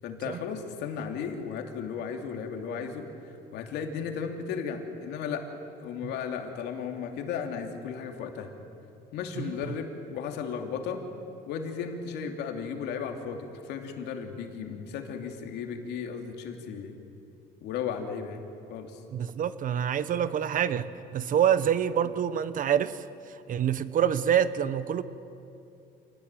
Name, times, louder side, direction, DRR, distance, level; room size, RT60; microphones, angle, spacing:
voice 1, 0.0-3.1 3.5-5.4 5.8-8.5 9.1-11.0 11.5-17.0 17.6-18.4 18.7-19.0, left 6 dB, 85° left, 4 dB, 2.9 m, -35 dB
voice 2, 9.4-9.8 19.1-25.0, right 9 dB, 50° right, 14 dB, 1.2 m, -27 dB
27.0 x 19.0 x 9.2 m, 2.7 s
cardioid pair, 110°, 17 cm